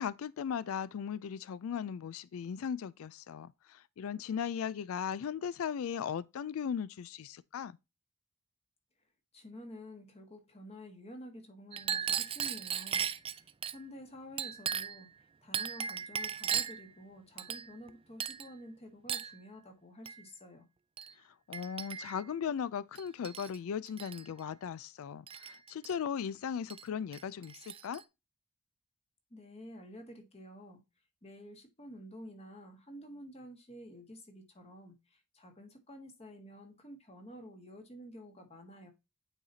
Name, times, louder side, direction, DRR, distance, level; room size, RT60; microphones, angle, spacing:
voice 1, 0.0-7.8 21.5-28.0, left 7 dB, 75° left, 0.3 m, -37 dB
voice 2, 9.3-20.6 29.3-30.8 31.2-38.9, equal, 30° left, 1.6 m, -50 dB
Chink clink, 11.7-13.8 14.4-15.0 15.5-16.9 17.4-17.9 18.2-18.5 19.1-19.4 20.0-20.2 21.0-21.1 21.5-22.2 22.9-23.6 23.9-24.2 25.3-25.9 26.7-26.8 27.1-28.0, right 8 dB, 25° right, 0.3 m, -37 dB
9.0 x 4.1 x 2.7 m
head